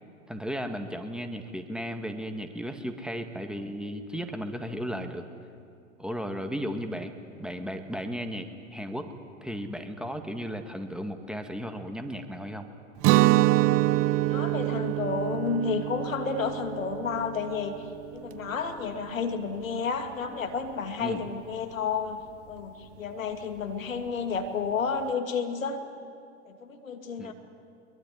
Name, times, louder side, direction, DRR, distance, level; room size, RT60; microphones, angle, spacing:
voice 1, 0.3-5.3 6.0-7.1 7.4-9.1 9.4-12.7 21.0-21.3 27.2-27.3, equal, ahead, 5 dB, 1.9 m, -35 dB
Guitar, 13.0-18.8, right 17 dB, 35° right, 0.7 m, -26 dB
voice 2, 14.3-17.7 18.1-22.2 22.5-25.8 26.4-27.3, left 5 dB, 85° left, 6 dB, 2.6 m, -31 dB
23.5 x 22.5 x 10.0 m, 2.4 s
hypercardioid pair, 100°, 39 cm